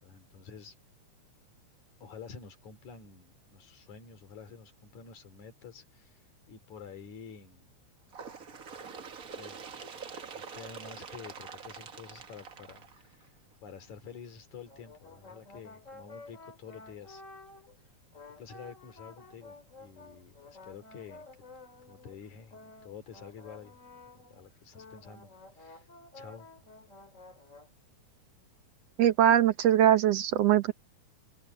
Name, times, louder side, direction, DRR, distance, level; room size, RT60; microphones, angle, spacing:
voice 1, 0.0-0.7 2.0-6.2 6.5-7.7 9.3-9.6 10.3-13.4 13.6-17.2 18.4-21.3 21.9-23.8 24.1-25.3 25.6-25.9 26.1-26.5, left 6 dB, 80° left, 4.3 m, -49 dB
Bird, 8.1-13.5 14.4-14.5 14.9-15.0 15.9-16.0 16.9-17.0 17.9-18.0, right 6 dB, 45° right, 1.2 m, -45 dB
sound 1, 14.6-17.8 18.1-24.5 24.7-27.7, left 2 dB, 25° left, 2.8 m, -52 dB
voice 2, 29.0-30.7, right 11 dB, 70° right, 1.8 m, -22 dB
open air
omnidirectional pair, 3.3 m